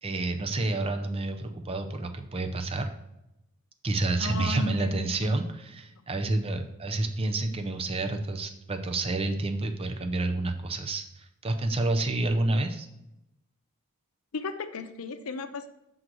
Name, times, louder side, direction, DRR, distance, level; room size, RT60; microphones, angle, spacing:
voice 1, 0.0-2.9 3.8-12.9, right 2 dB, 25° right, 6 dB, 0.6 m, -29 dB
voice 2, 4.2-5.3 14.3-15.7, left 2 dB, 70° left, 9 dB, 0.6 m, -35 dB
6.1 x 3.9 x 6.0 m, 0.88 s
head